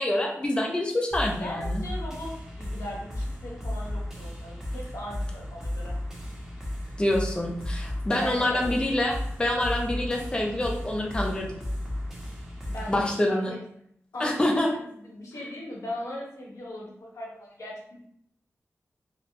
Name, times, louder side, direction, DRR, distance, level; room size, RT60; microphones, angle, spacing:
voice 1, 0.0-1.8 7.0-11.6 12.9-13.5 14.2-14.7, left 1 dB, 20° left, -1 dB, 0.5 m, -26 dB
sound 1, 1.1-13.1, left 1 dB, 10° right, 0.8 m, -34 dB
voice 2, 1.4-6.0 8.2-8.8 12.7-13.6 14.1-17.8, left 1 dB, 90° left, -4 dB, 1.0 m, -38 dB
2.9 x 2.3 x 3.0 m, 0.69 s
wide cardioid pair, 130°, 5 cm